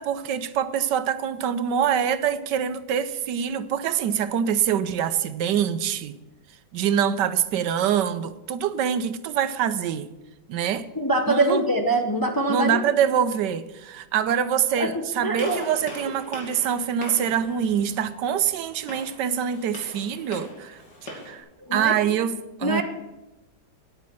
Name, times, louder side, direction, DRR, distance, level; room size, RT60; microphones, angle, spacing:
voice 1, 0.0-6.1 6.7-10.1 10.5-10.9 11.3-11.6 12.5-21.4 21.7-22.3 22.6-22.8, right 8 dB, 80° right, 12 dB, 1.3 m, -25 dB
voice 2, 10.9-12.8 14.7-15.6 21.7-21.9 22.6-22.8, right 1 dB, 15° left, 3 dB, 0.7 m, -24 dB
Gunshot gunfire, 15.4-21.4, left 1 dB, 70° left, 3.0 m, -41 dB
9.7 x 9.0 x 7.6 m, 1.0 s
omnidirectional pair, 1.9 m